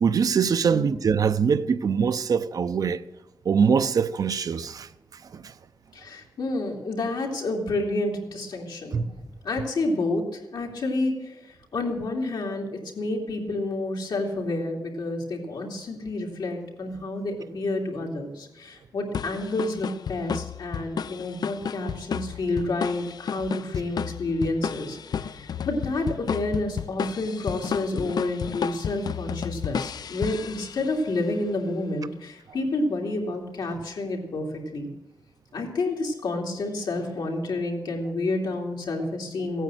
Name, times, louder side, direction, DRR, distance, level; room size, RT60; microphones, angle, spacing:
voice 1, 0.0-3.0 3.5-4.9 5.3-5.5 8.9-9.1, right 6 dB, 55° right, 0.6 m, -23 dB
voice 2, 5.9-9.0 9.4-34.9 35.5-39.6, left 2 dB, 80° left, 2.8 m, -29 dB
sound 1, 19.1-31.1, left 7 dB, 65° left, 0.4 m, -32 dB
15.5 x 9.2 x 7.7 m
wide cardioid pair, 170°, 7 cm